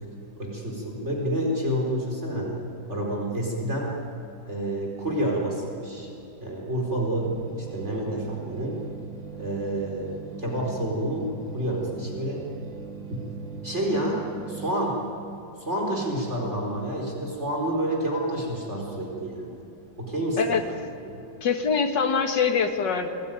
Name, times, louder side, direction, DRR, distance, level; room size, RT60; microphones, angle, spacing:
voice 1, 0.4-2.6 2.9-3.9 4.5-6.1 6.4-8.8 9.3-12.4 13.1-13.3 13.6-15.0 15.6-19.6 20.0-20.7 21.0-21.2, right 1 dB, 35° right, -1 dB, 4.6 m, -29 dB
sound 1, 7.2-14.8, right 6 dB, 70° right, 2.3 m, -41 dB
voice 2, 21.4-23.1, left 6 dB, 60° left, 5 dB, 2.3 m, -23 dB
28.0 x 20.0 x 9.2 m, 2.7 s
omnidirectional pair, 2.2 m